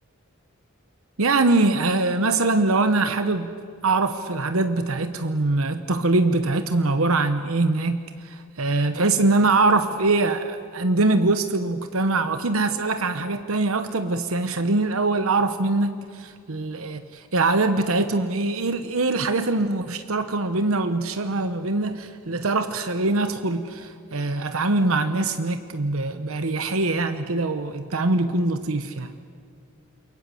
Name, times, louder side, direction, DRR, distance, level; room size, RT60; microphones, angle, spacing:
voice 1, 1.2-3.5 3.8-29.1, right 2 dB, 65° right, 9 dB, 1.1 m, -23 dB
28.0 x 23.0 x 7.8 m, 2.2 s
head